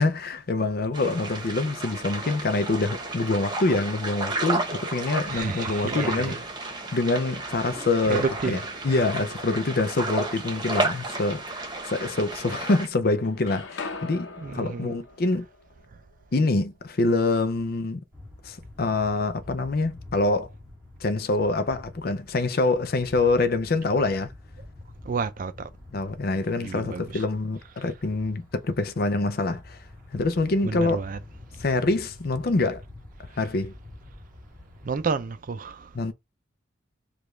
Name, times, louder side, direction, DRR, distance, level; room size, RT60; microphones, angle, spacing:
voice 1, 0.0-6.4 6.9-8.6 8.8-11.6 11.9-15.5 16.3-18.0 18.4-20.5 21.0-24.3 25.9-29.8 30.1-31.0 31.6-32.8 33.4-33.7 35.9-36.1, left 2 dB, 50° left, 0.5 m, -25 dB
sound 1, 0.9-12.9, right 2 dB, 25° right, 1.1 m, -32 dB
voice 2, 5.3-6.4 8.1-8.6 14.4-15.0 25.0-25.7 26.6-27.2 30.6-31.2 34.8-35.9, right 4 dB, 45° right, 0.4 m, -30 dB
sound 2, 11.8-12.8 13.0-17.0, left 4 dB, 90° left, 0.8 m, -42 dB
sound 3, 18.1-35.1, left 2 dB, 10° left, 2.7 m, -47 dB
5.0 x 2.4 x 3.2 m
head